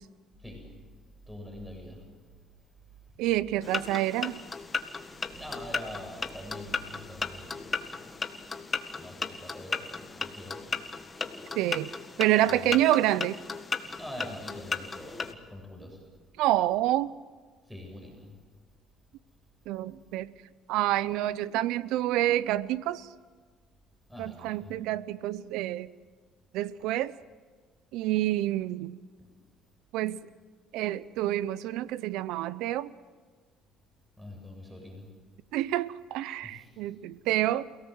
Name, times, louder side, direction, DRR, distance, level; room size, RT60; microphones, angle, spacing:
voice 1, 1.3-2.0 5.3-7.8 8.9-10.7 12.5-12.8 14.0-16.0 17.7-18.3 24.1-24.7 34.2-35.1 36.4-36.7, left 1 dB, 5° right, 7.5 m, -44 dB
voice 2, 3.2-4.4 11.5-11.9 12.2-13.4 16.4-17.1 19.7-20.3 20.7-23.1 24.2-25.9 26.5-27.1 27.9-29.0 29.9-30.2 30.7-32.9 35.5-37.6, right 14 dB, 80° right, 0.7 m, -28 dB
sound 1, 3.6-15.3, left 4 dB, 30° left, 1.8 m, -36 dB
28.5 x 18.0 x 8.1 m
supercardioid pair, 75°, 0 cm